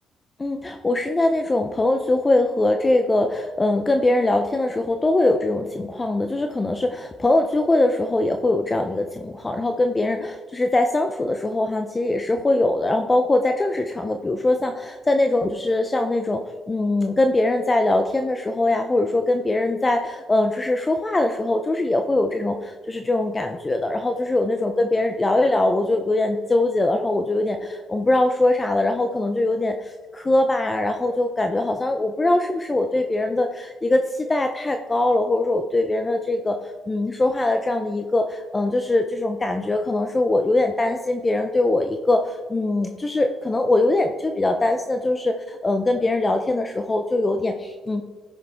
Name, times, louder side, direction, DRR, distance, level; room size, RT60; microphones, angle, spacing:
voice 1, 0.4-48.0, left 2 dB, 25° left, 5 dB, 0.7 m, -22 dB
16.0 x 6.4 x 3.7 m, 1.5 s
cardioid pair, 90°, 0 cm